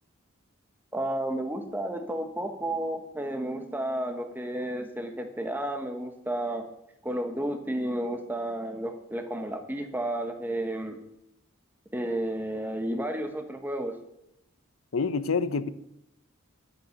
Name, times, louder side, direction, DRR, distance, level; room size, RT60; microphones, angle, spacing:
voice 1, 0.9-6.7 7.0-11.0 11.9-13.9, right 1 dB, 10° right, 1.0 m, -32 dB
voice 2, 14.9-15.7, left 4 dB, 75° left, 0.7 m, -27 dB
10.5 x 10.0 x 6.4 m
head